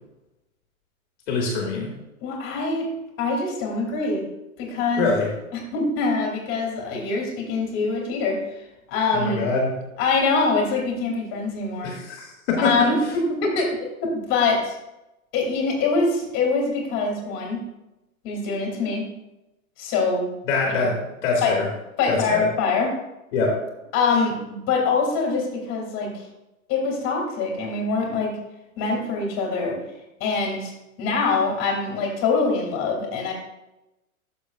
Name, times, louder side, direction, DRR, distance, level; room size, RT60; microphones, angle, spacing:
voice 1, 1.3-1.9 5.0-5.3 9.1-9.7 11.8-12.9 20.5-21.7 22.1-22.5 23.3-23.6, left 3 dB, 50° left, -1 dB, 2.0 m, -24 dB
voice 2, 2.2-2.9 3.2-4.2 4.6-5.1 5.7-9.4 10.0-11.9 12.6-14.7 15.3-17.6 18.2-19.0 19.8-20.3 20.7-20.8 21.4-21.5 22.0-22.9 23.9-26.2 26.7-28.4 28.8-29.8 30.2-30.7 31.0-33.3, left 4 dB, 30° left, -1 dB, 2.6 m, -24 dB
12.0 x 6.9 x 2.4 m, 0.95 s
hypercardioid pair, 150°, 43 cm